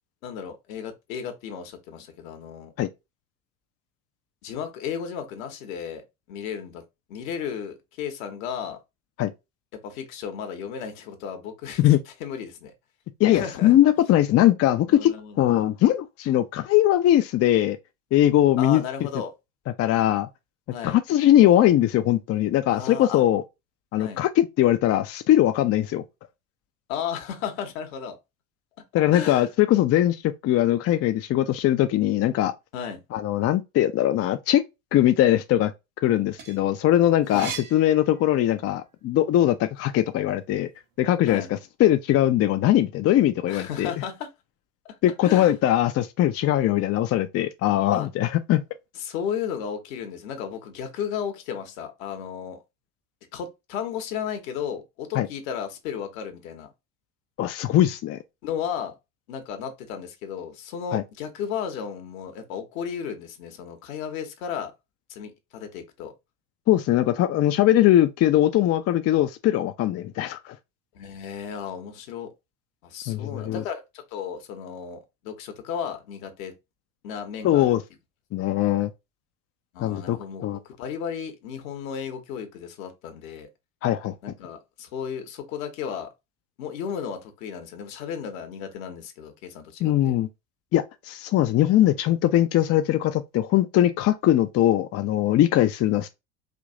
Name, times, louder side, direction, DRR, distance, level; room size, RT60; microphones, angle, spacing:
voice 1, 0.2-2.7 4.4-6.8 7.1-8.8 9.8-12.7 13.3-13.8 14.9-15.4 18.6-19.3 20.7-21.0 22.7-23.2 24.0-24.2 26.9-28.2 28.8-29.5 32.7-33.0 37.3-37.5 41.3-41.5 43.5-44.3 44.8-45.5 47.9-48.1 48.9-52.6 53.3-56.7 58.4-58.9 59.3-64.7 65.1-66.1 70.9-72.3 72.8-76.5 77.0-77.7 78.4-78.5 79.7-83.5 84.2-86.1 86.6-90.1, left 7 dB, 70° left, 1.3 m, -34 dB
voice 2, 13.2-17.8 18.1-18.8 19.8-20.3 20.8-23.4 23.9-26.0 28.9-32.5 33.1-34.6 34.9-35.7 36.0-40.7 41.0-41.4 41.8-43.9 45.0-48.6 55.1-55.3 57.4-58.2 60.9-61.0 66.7-70.6 73.1-73.6 77.4-77.8 78.3-78.9 79.8-80.6 83.8-84.1 89.8-90.3 90.7-96.1, left 13 dB, 35° left, 0.5 m, -21 dB
sound 1, 36.1-38.8 39.2-40.6, right 7 dB, 70° right, 1.2 m, -40 dB
5.1 x 2.6 x 2.6 m
hypercardioid pair, 70°, 43 cm